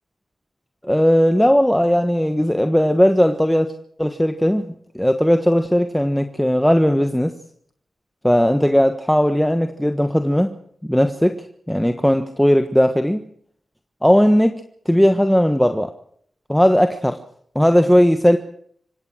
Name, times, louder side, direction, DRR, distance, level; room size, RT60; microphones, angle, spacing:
voice 1, 0.8-3.7 4.0-4.7 4.9-7.3 8.2-10.5 10.8-11.4 11.7-13.2 14.0-15.9 16.5-17.2 17.5-18.4, equal, 5° left, 7 dB, 1.4 m, -17 dB
26.0 x 17.0 x 6.3 m, 0.64 s
wide cardioid pair, 95°, 0 cm